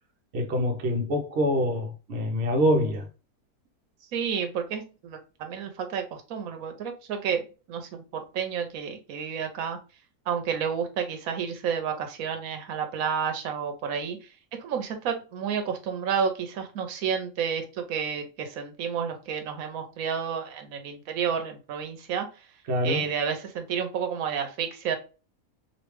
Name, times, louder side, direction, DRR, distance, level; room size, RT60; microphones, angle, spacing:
voice 1, 0.3-3.1 22.7-23.0, equal, 55° right, 0.9 m, -25 dB
voice 2, 4.1-6.0 6.3-7.4 7.7-9.8 10.3-14.2 14.6-22.3 22.8-25.0, right 7 dB, 80° right, 1.1 m, -30 dB
3.2 x 2.8 x 3.1 m
omnidirectional pair, 1.5 m